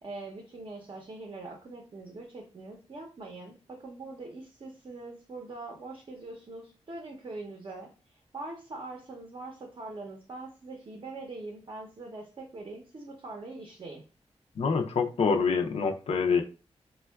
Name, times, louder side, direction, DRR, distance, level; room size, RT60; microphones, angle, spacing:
voice 1, 0.0-14.0, right 2 dB, 45° right, 1 dB, 0.6 m, -43 dB
voice 2, 14.6-16.4, left 5 dB, 65° left, 3 dB, 0.4 m, -26 dB
4.3 x 2.2 x 2.2 m, 0.35 s
wide cardioid pair, 135°, 11 cm